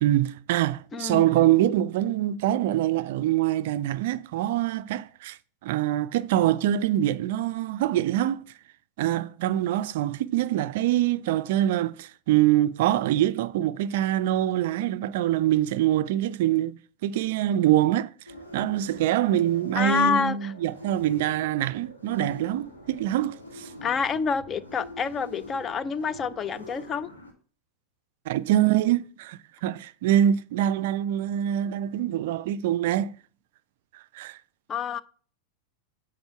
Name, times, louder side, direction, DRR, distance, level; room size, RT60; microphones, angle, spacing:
voice 1, 0.0-8.5 9.0-18.1 18.5-23.7 28.3-33.2 33.9-34.4, right 12 dB, 50° right, 0.4 m, -24 dB
voice 2, 0.9-1.3 19.8-20.5 23.8-27.1 34.7-35.0, left 5 dB, 25° left, 0.5 m, -27 dB
sound 1, 18.3-27.3, left 1 dB, 80° left, 2.2 m, -44 dB
7.9 x 4.1 x 5.7 m
figure-of-eight pair, 90°, 0 cm